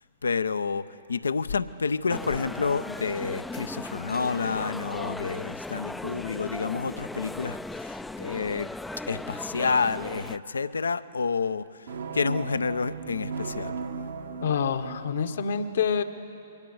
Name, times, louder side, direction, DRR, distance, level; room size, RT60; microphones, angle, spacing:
voice 1, 0.0-8.7 9.1-11.9 12.1-13.8, left 5 dB, 80° left, 15 dB, 0.6 m, -29 dB
sound 1, 2.1-10.4, left 2 dB, 5° left, 0.4 m, -37 dB
sound 2, 11.9-15.0, right 5 dB, 70° right, 1.3 m, -36 dB
voice 2, 14.4-16.0, left 6 dB, 60° left, 9 dB, 1.1 m, -27 dB
22.5 x 18.0 x 7.9 m, 2.7 s
figure-of-eight pair, 120°, 0 cm